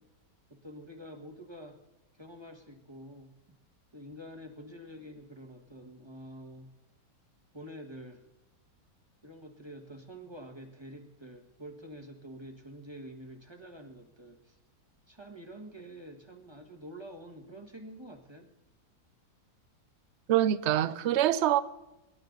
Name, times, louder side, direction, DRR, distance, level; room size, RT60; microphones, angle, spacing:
voice 1, 0.5-1.8 2.1-3.6 3.9-6.7 7.5-8.2 9.2-14.6 15.1-18.5, equal, 15° right, 1.4 m, -47 dB
voice 2, 20.3-21.6, right 12 dB, 60° right, 0.7 m, -25 dB
24.5 x 11.0 x 3.9 m
omnidirectional pair, 1.8 m